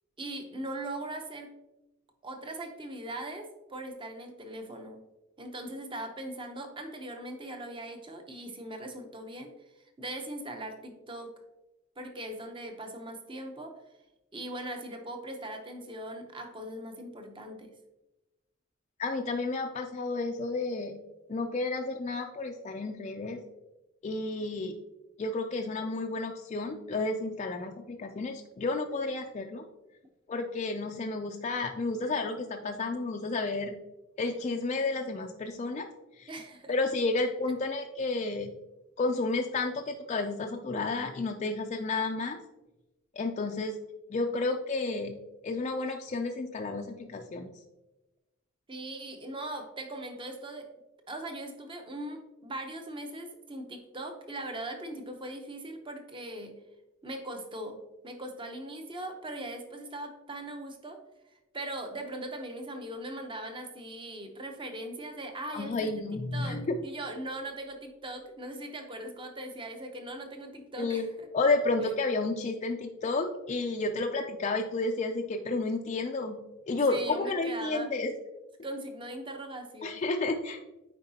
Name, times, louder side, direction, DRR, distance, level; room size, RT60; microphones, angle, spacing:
voice 1, 0.2-1.5 2.2-5.0 5.4-11.3 12.0-13.8 14.3-17.7 36.3-36.7 48.7-50.7 51.1-56.6 57.0-61.0 61.3-65.9 66.3-71.3 71.8-71.9 76.9-78.0 78.6-80.0, right 1 dB, 25° right, 5 dB, 0.8 m, -40 dB
voice 2, 19.0-21.0 21.3-23.4 24.0-24.8 25.2-29.6 30.3-33.8 34.2-35.9 36.2-36.3 36.7-38.6 39.0-42.4 43.2-43.8 44.1-45.2 45.4-47.5 65.5-66.8 70.8-71.1 71.3-78.1 79.8-80.6, left 3 dB, 35° left, 3 dB, 0.4 m, -31 dB
8.6 x 4.7 x 2.8 m, 1.0 s
head